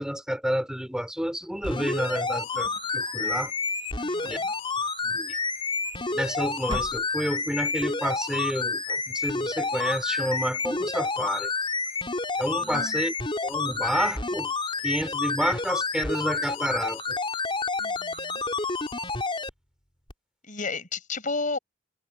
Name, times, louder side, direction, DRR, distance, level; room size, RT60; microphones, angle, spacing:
voice 1, 0.0-3.5 4.2-4.4 5.0-5.3 6.1-11.5 12.4-13.1 13.4-14.5 14.8-17.2, equal, 5° right, 3.9 m, -30 dB
sound 1, 1.6-19.5 20.1-20.2, left 4 dB, 30° left, 4.9 m, -29 dB
sound 2, 2.5-3.6 4.1-4.8 5.8-6.3 6.6-7.5, right 1 dB, 25° right, 1.5 m, -40 dB
voice 2, 4.0-4.5 12.6-13.0 17.8-18.4 20.4-21.6, left 3 dB, 45° left, 6.7 m, -33 dB
head